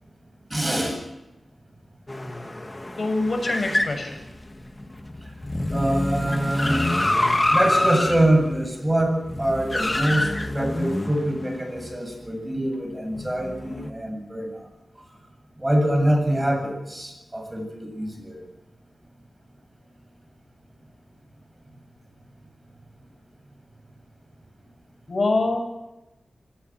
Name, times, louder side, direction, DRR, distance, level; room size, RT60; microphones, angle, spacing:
voice 1, 0.5-1.0 5.2-5.3 5.7-6.9 7.5-14.5 15.6-18.4, right 1 dB, 20° right, 4 dB, 8.0 m, -24 dB
sound 1, 2.1-12.0 13.1-13.9, left 1 dB, 25° left, 2.3 m, -27 dB
voice 2, 3.0-4.2 25.1-25.6, left 2 dB, 55° left, 5 dB, 6.8 m, -24 dB
26.0 x 18.5 x 6.3 m, 0.97 s
wide cardioid pair, 65°, 0 cm